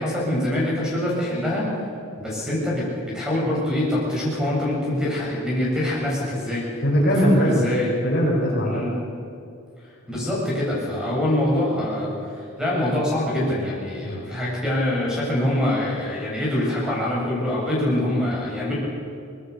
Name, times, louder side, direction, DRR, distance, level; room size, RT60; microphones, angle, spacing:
voice 1, 0.0-1.6 2.2-2.9 3.1-6.6 7.4-7.9 8.7-8.9 10.1-12.1 12.6-18.7, left 1 dB, 5° right, -5 dB, 7.5 m, -24 dB
voice 2, 6.8-7.6 8.0-8.9 14.0-14.3, equal, 45° left, -3 dB, 6.1 m, -20 dB
25.0 x 20.0 x 7.0 m, 2.5 s
head